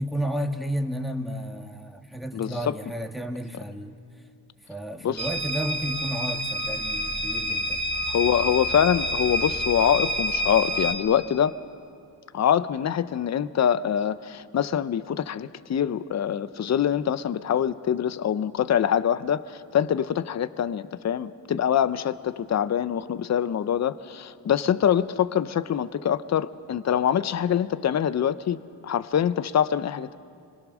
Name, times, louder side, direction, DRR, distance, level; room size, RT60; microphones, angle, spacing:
voice 1, 0.0-3.9 4.7-7.8, equal, ahead, 3 dB, 2.1 m, -32 dB
voice 2, 2.3-2.8 5.0-5.3 8.1-11.5 12.3-30.2, left 9 dB, 45° left, 14 dB, 0.8 m, -24 dB
sound 1, 5.2-10.9, equal, 25° left, 3.3 m, -28 dB
26.0 x 22.0 x 6.3 m, 2.3 s
cardioid pair, 75°, 39 cm